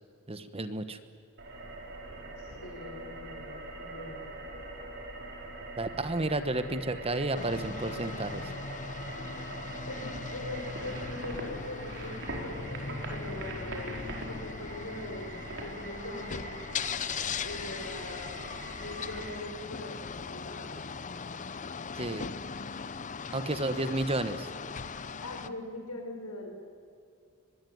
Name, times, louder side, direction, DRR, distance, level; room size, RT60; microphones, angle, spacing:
voice 1, 0.3-1.0 5.8-8.5 21.9-22.3 23.3-24.5, right 2 dB, 25° right, 11 dB, 1.1 m, -32 dB
sound 1, 1.4-19.4, right 2 dB, 55° right, 4.9 m, -42 dB
voice 2, 2.4-4.2 9.8-14.0 14.3-16.5 17.4-18.4 18.8-20.8 25.2-26.5, left 1 dB, 80° left, 3 dB, 5.6 m, -42 dB
sound 2, 7.3-25.5, left 5 dB, 35° left, 0.7 m, -39 dB
24.0 x 20.5 x 9.5 m, 2.4 s
head